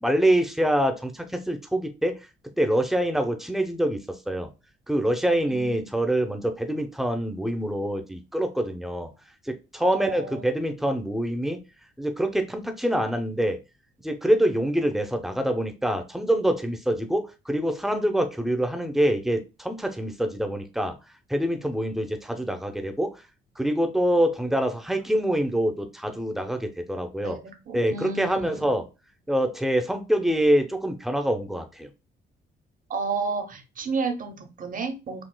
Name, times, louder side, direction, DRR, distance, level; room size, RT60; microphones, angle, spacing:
voice 1, 0.0-2.2 2.6-4.5 4.9-9.1 9.5-11.6 12.0-13.6 14.0-21.0 21.3-23.2 23.6-27.4 27.7-28.8 29.3-31.9, right 1 dB, ahead, 5 dB, 0.7 m, -25 dB
voice 2, 5.5-5.9 9.8-10.4 27.2-28.7 32.9-35.2, right 4 dB, 45° right, 6 dB, 0.9 m, -32 dB
6.1 x 2.3 x 2.2 m, 0.28 s
cardioid pair, 90°, 20 cm